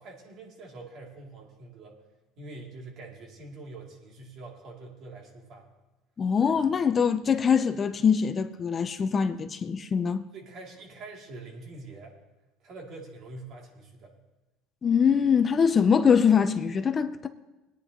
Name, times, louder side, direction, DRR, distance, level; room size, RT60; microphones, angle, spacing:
voice 1, 0.0-2.0 2.4-5.7 10.3-12.1 12.6-14.2, right 3 dB, 55° right, 2.8 m, -45 dB
voice 2, 6.2-10.3 14.8-17.3, left 6 dB, 30° left, 0.6 m, -23 dB
20.5 x 9.8 x 3.0 m
supercardioid pair, 95°, 0 cm